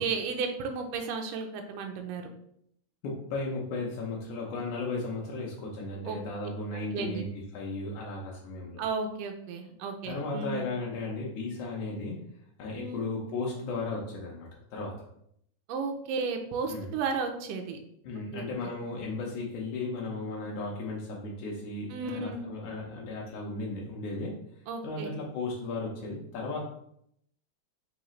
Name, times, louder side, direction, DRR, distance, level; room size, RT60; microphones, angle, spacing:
voice 1, 0.0-2.3 6.0-6.2 6.9-7.3 8.8-10.7 12.7-13.1 15.7-17.8 18.3-18.4 21.9-22.4 24.7-25.1, right 5 dB, 90° right, 4 dB, 1.4 m, -33 dB
voice 2, 3.0-7.2 7.5-8.8 10.0-12.2 12.6-15.0 16.7-16.9 18.0-24.3 24.8-26.6, left 3 dB, 70° left, -3 dB, 1.5 m, -35 dB
4.8 x 3.2 x 3.1 m, 0.71 s
omnidirectional pair, 3.6 m